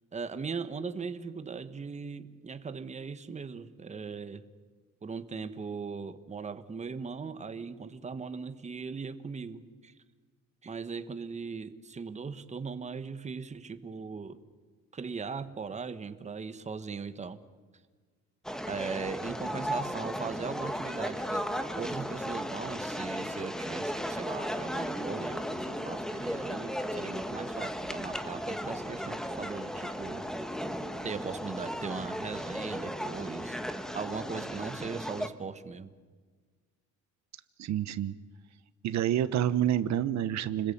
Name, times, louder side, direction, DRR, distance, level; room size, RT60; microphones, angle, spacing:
voice 1, 0.1-4.4 5.0-9.9 10.6-14.4 14.9-17.4 18.7-21.4 21.8-30.3 31.0-35.9, right 5 dB, 25° right, 11 dB, 1.3 m, -39 dB
sound 1, 18.4-35.3, equal, ahead, 1.4 m, -35 dB
voice 2, 37.6-38.1 38.8-40.7, right 11 dB, 70° right, 13 dB, 1.0 m, -28 dB
30.0 x 21.0 x 8.6 m, 1.5 s
cardioid pair, 145°, 29 cm